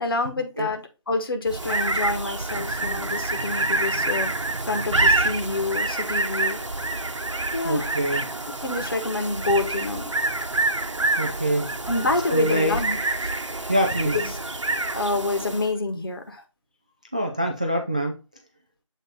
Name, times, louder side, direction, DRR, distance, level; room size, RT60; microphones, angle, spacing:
voice 1, 0.0-4.3 4.6-6.6 7.5-8.0 8.5-10.1 11.9-13.3 14.1-14.4 14.9-16.4, left 2 dB, 45° left, 1.4 m, -27 dB
sound 1, 1.5-15.8, right 2 dB, 65° right, 1.1 m, -27 dB
voice 2, 7.6-8.3 11.2-11.7 12.3-12.8 13.7-14.2 17.1-18.2, equal, 15° right, 0.4 m, -24 dB
7.6 x 3.2 x 4.1 m
figure-of-eight pair, 155°, 16 cm